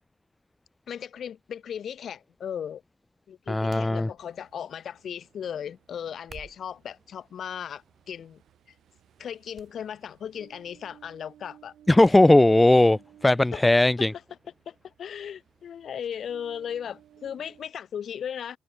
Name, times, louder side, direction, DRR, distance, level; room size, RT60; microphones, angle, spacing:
voice 1, 0.9-2.8 3.3-8.4 9.2-11.7 13.5-13.6 14.0-14.1 14.7-18.6, left 8 dB, 60° left, 3.7 m, -37 dB
voice 2, 3.5-4.1 11.9-14.1, left 1 dB, 10° left, 0.5 m, -18 dB
sound 1, 3.7-4.5 6.1-6.8 7.6-8.0 8.4-8.6 9.5-9.7 10.0-10.1 12.0-12.2 12.6-12.7, right 5 dB, 40° right, 5.1 m, -50 dB
Ocean, 4.2-17.7, right 11 dB, 70° right, 4.3 m, -58 dB
cardioid pair, 90°, 0 cm